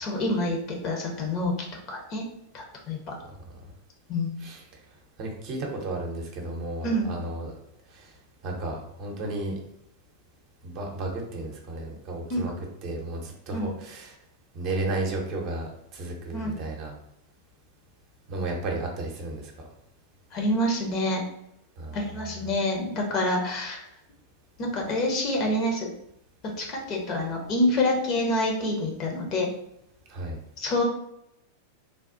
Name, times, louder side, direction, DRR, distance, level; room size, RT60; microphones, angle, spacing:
voice 1, 0.0-2.2 2.5-3.2 4.1-4.4 6.8-7.1 12.3-12.4 13.5-13.7 16.3-16.5 20.3-21.2 21.9-23.8 24.6-25.9 26.6-29.5 30.6-30.8, left 1 dB, 35° left, 1 dB, 0.8 m, -27 dB
voice 2, 5.2-7.6 7.9-8.1 8.4-9.6 10.6-12.5 12.8-14.2 14.5-16.9 18.3-19.5 21.8-22.1 30.1-30.4, right 2 dB, 40° right, 1 dB, 0.7 m, -33 dB
3.4 x 2.3 x 2.5 m, 0.79 s
figure-of-eight pair, 90°, 0 cm